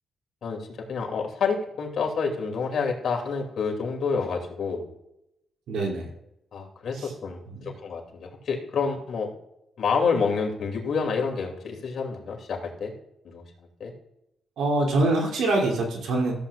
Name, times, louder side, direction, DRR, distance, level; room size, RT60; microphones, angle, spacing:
voice 1, 0.4-4.9 6.5-9.3 9.8-12.9 13.2-13.4 13.8-13.9, left 5 dB, 60° left, 1 dB, 2.7 m, -28 dB
voice 2, 5.7-6.1 6.9-7.1 7.5-7.7 14.6-16.3, right 2 dB, 85° right, -1 dB, 3.1 m, -25 dB
15.0 x 8.2 x 2.5 m, 0.82 s
cardioid pair, 120°, 0 cm